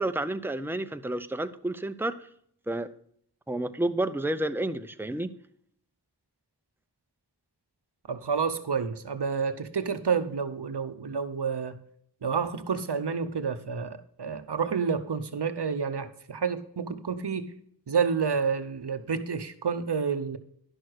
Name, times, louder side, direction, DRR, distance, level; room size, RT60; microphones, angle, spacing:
voice 1, 0.0-2.3 2.7-2.9 3.5-5.3, right 1 dB, 5° right, 0.6 m, -30 dB
voice 2, 8.1-11.8 12.2-17.6 17.9-20.4, right 6 dB, 80° right, 0.8 m, -29 dB
11.0 x 6.3 x 4.7 m
wide cardioid pair, 45°, 40 cm